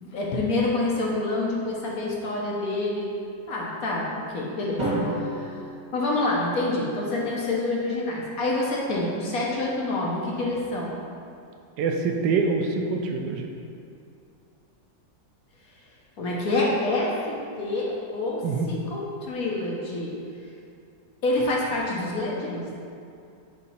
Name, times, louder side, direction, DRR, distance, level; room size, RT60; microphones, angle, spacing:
voice 1, 0.0-3.1 3.5-4.8 5.2-5.5 5.9-11.0 16.2-18.4 18.7-20.1 21.2-22.8, left 2 dB, 60° left, -3 dB, 1.1 m, -27 dB
Drum, 4.8-6.9, right 1 dB, 25° right, 1.3 m, -31 dB
voice 2, 11.8-13.5 18.4-18.7, right 4 dB, 80° right, 3 dB, 1.2 m, -25 dB
8.2 x 2.8 x 4.2 m, 2.5 s
omnidirectional pair, 2.0 m